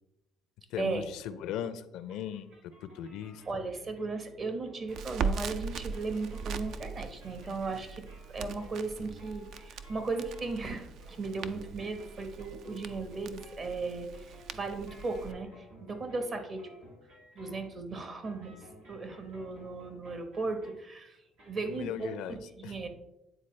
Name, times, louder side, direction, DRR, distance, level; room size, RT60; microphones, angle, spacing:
voice 1, 0.7-2.5 2.8-3.6 20.5-20.6 21.7-22.4 22.6-22.7, left 9 dB, 75° left, 13 dB, 0.4 m, -38 dB
sound 1, 2.1-20.9 21.3-21.7, equal, 90° right, 2.5 m, -55 dB
voice 2, 3.5-16.6 17.3-18.6 18.9-22.9, right 3 dB, 45° right, 7 dB, 1.2 m, -36 dB
Crackle, 4.9-15.3, right 5 dB, 70° right, 0.4 m, -40 dB
9.0 x 3.9 x 3.2 m, 0.87 s
supercardioid pair, 75°, 0 cm